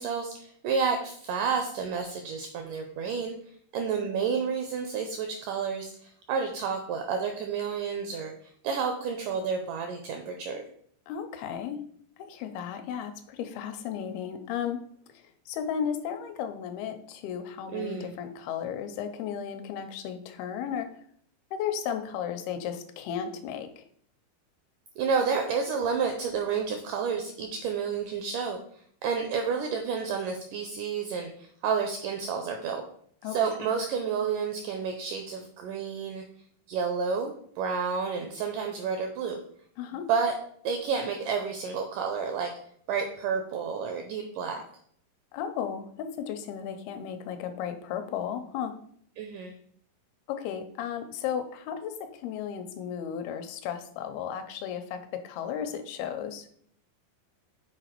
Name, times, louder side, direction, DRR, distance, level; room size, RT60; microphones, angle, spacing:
voice 1, 0.0-3.3 3.7-10.6 17.7-18.2 25.0-28.6 29.0-32.8 33.2-36.2 36.7-39.4 40.1-40.3 40.6-42.5 42.9-44.6 49.2-49.5, right 6 dB, 85° right, 4 dB, 1.8 m, -30 dB
voice 2, 11.1-11.8 12.2-14.8 15.5-20.9 21.5-23.8 33.2-33.4 39.8-40.1 45.3-48.8 50.3-56.4, left 8 dB, 90° left, 8 dB, 2.6 m, -34 dB
6.6 x 4.0 x 4.4 m, 0.62 s
omnidirectional pair, 4.4 m